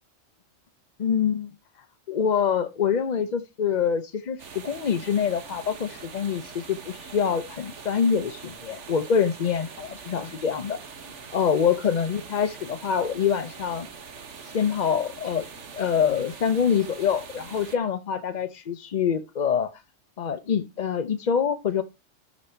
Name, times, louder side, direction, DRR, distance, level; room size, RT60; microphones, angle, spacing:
voice 1, 1.0-1.5 2.1-4.4 4.6-10.8 11.3-13.9 14.4-15.4 15.7-19.7 20.2-21.8, left 7 dB, 45° left, 0.6 m, -25 dB
sound 1, 4.4-17.8, right 5 dB, 65° right, 1.5 m, -43 dB
12.0 x 5.3 x 4.4 m
omnidirectional pair, 1.3 m